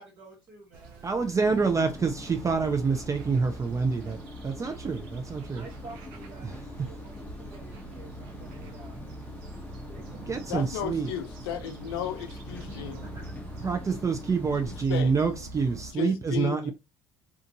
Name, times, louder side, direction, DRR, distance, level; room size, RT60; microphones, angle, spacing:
voice 1, 0.0-1.1 3.9-4.1 5.4-9.0 9.9-10.2 12.6-13.3, right 3 dB, 45° right, 1.1 m, -50 dB
sound 1, 0.7-15.9, right 3 dB, 70° right, 0.6 m, -44 dB
voice 2, 1.0-4.2 4.4-5.6 6.4-6.6 10.3-11.1 13.6-16.7, right 5 dB, 25° right, 0.5 m, -27 dB
sound 2, 1.4-14.8, left 2 dB, 10° left, 0.8 m, -44 dB
voice 3, 10.5-13.0 14.7-15.1 16.0-16.7, left 9 dB, 80° left, 0.5 m, -34 dB
2.5 x 2.4 x 2.7 m
hypercardioid pair, 65°, 13 cm